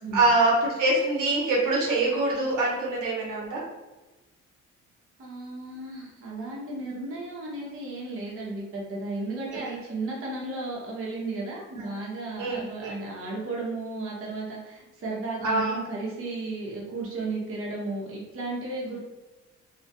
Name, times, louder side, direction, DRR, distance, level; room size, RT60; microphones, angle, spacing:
voice 1, 0.1-3.6 9.5-9.7 11.8-11.9 12.4-12.9 15.4-15.7, right 2 dB, 80° right, -4 dB, 0.8 m, -24 dB
voice 2, 5.2-19.0, right 2 dB, 45° right, -4 dB, 0.8 m, -34 dB
2.3 x 2.1 x 2.6 m, 1.1 s
cardioid pair, 90°, 30 cm